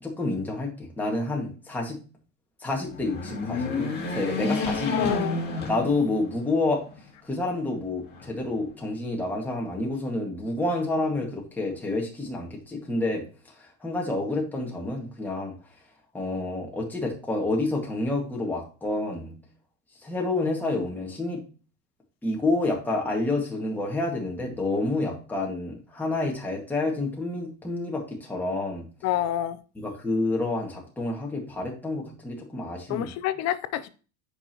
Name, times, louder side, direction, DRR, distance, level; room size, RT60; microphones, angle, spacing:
voice 1, 0.0-2.0 2.6-5.1 5.7-6.8 7.2-13.2 13.6-15.5 16.1-19.3 20.0-21.4 22.2-28.9 29.8-33.1, left 2 dB, 5° left, -2 dB, 1.9 m, -29 dB
sound 1, 2.8-6.4 6.9-7.0 8.1-8.9, left 3 dB, 25° left, 2.2 m, -30 dB
voice 2, 4.9-5.4 29.0-29.6 32.9-33.9, left 12 dB, 40° left, 13 dB, 0.7 m, -27 dB
8.1 x 5.5 x 3.0 m, 0.36 s
supercardioid pair, 130°, 40 cm